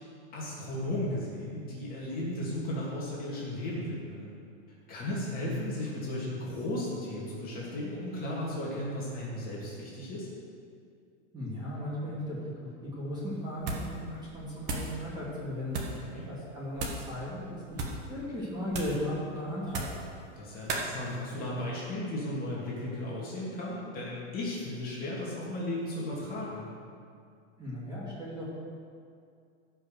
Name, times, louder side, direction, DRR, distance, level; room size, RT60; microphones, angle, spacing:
voice 1, 0.3-4.3 4.9-10.3 16.0-16.3 20.4-26.7, left 1 dB, 25° left, -6 dB, 2.9 m, -35 dB
voice 2, 11.3-14.0 14.3-15.7 16.2-17.6 18.1-19.9 27.6-28.5, left 1 dB, 10° right, -8 dB, 2.9 m, -36 dB
sound 1, 13.6-14.0 14.3-15.0 15.7-16.0 16.7-17.1 17.7-18.1 18.7-19.0 19.7-20.1 20.7-20.9, right 3 dB, 30° right, 1.6 m, -35 dB
15.5 x 5.9 x 6.6 m, 2.3 s
supercardioid pair, 155°, 36 cm